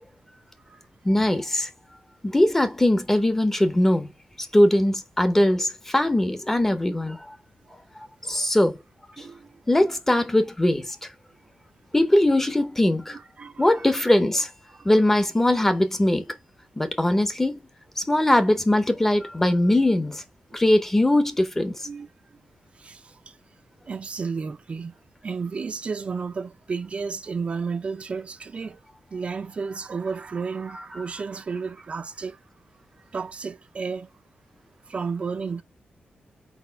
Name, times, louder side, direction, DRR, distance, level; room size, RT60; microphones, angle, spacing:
voice 1, 1.0-1.7 2.2-4.1 4.4-7.2 8.3-8.8 9.7-11.0 11.9-13.2 13.6-14.5 14.8-16.2 16.8-17.6 18.0-20.2 20.5-21.8, left 1 dB, 10° left, 0.8 m, -21 dB
voice 2, 9.1-9.5 13.1-14.0 14.7-14.9 21.8-22.1 22.8-23.0 23.9-24.9 25.2-28.8 29.1-32.4 33.1-34.1 34.9-35.6, right 5 dB, 35° right, 0.5 m, -32 dB
4.7 x 4.2 x 5.4 m
wide cardioid pair, 175°, 3 cm